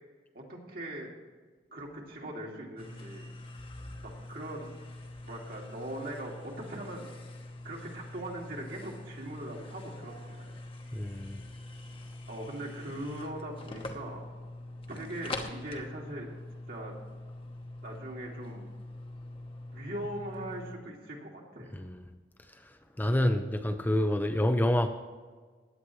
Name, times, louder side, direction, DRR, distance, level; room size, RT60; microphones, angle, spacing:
voice 1, 0.3-1.1 1.7-3.3 4.0-4.7 5.2-7.1 7.6-10.6 12.3-14.2 14.9-16.3 16.7-16.9 17.8-18.7 19.7-21.7, right 1 dB, 60° right, -1 dB, 2.3 m, -40 dB
sound 1, 2.8-20.8, left 2 dB, 30° left, 1.0 m, -44 dB
voice 2, 10.9-11.4 21.7-22.0 23.0-24.9, left 1 dB, 10° left, 7 dB, 0.5 m, -27 dB
16.0 x 10.0 x 3.2 m, 1.5 s
head